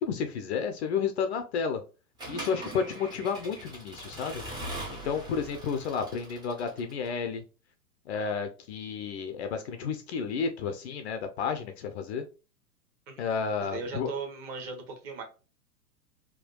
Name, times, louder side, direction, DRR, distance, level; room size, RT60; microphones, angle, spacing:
voice 1, 0.0-1.8 2.3-4.4 4.9-7.4 8.1-12.2 13.2-14.1, left 6 dB, 45° left, 6 dB, 0.5 m, -31 dB
Accelerating revving vroom / Mechanisms, 2.2-7.1, right 1 dB, 10° right, 0.5 m, -41 dB
voice 2, 13.7-15.2, right 4 dB, 35° right, 3 dB, 1.1 m, -37 dB
3.5 x 2.2 x 2.2 m, 0.32 s
figure-of-eight pair, 105°, 49 cm